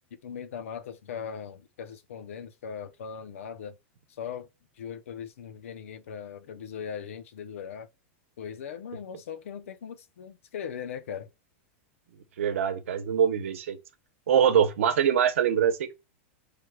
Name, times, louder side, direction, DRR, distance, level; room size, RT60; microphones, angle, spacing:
voice 1, 0.2-3.8 4.1-4.5 4.8-7.9 8.4-11.3, left 7 dB, 85° left, 0.6 m, -39 dB
voice 2, 12.4-13.8 14.3-15.9, right 8 dB, 75° right, 0.8 m, -23 dB
4.7 x 3.3 x 2.3 m
supercardioid pair, 175°, 7 cm